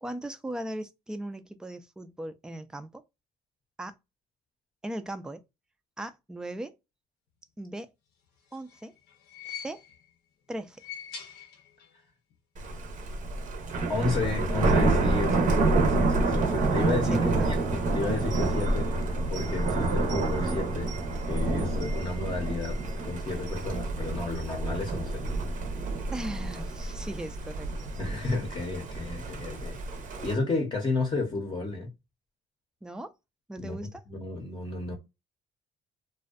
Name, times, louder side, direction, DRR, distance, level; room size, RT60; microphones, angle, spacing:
voice 1, 0.0-3.0 3.8-4.0 4.8-5.4 6.0-6.7 7.6-7.9 8.5-8.9 9.5-9.8 10.5-10.8 17.1-17.6 26.1-27.7 32.8-33.1 33.5-34.0, right 1 dB, 5° right, 0.3 m, -38 dB
sound 1, 8.2-10.2 10.6-12.1 12.3-12.4 13.5-13.6, left 7 dB, 85° left, 0.7 m, -44 dB
Thunder, 12.6-30.3, right 2 dB, 50° right, 0.6 m, -28 dB
voice 2, 13.9-18.9 19.3-20.9 21.3-22.8 23.0-25.1 28.0-29.8 30.2-31.9 33.6-34.9, left 3 dB, 25° left, 0.7 m, -32 dB
2.5 x 2.2 x 2.4 m
cardioid pair, 110°, 17 cm